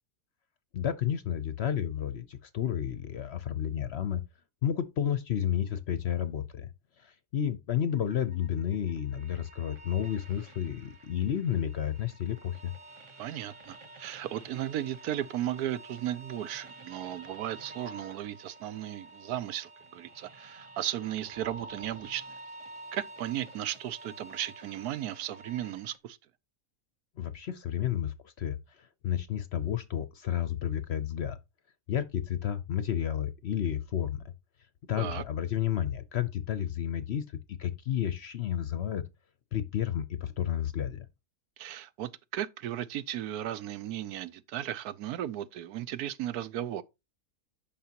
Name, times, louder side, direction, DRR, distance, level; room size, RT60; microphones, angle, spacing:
voice 1, 0.7-4.2 4.6-6.7 7.0-12.7 27.2-31.4 31.9-34.2 34.9-39.0 39.5-41.1, left 10 dB, 60° left, 0.7 m, -31 dB
sound 1, 7.9-26.0, right 2 dB, 35° right, 0.5 m, -50 dB
voice 2, 13.2-22.2 22.9-26.2 35.0-35.2 41.6-46.8, right 12 dB, 85° right, 1.1 m, -35 dB
11.5 x 5.7 x 2.8 m
omnidirectional pair, 1.6 m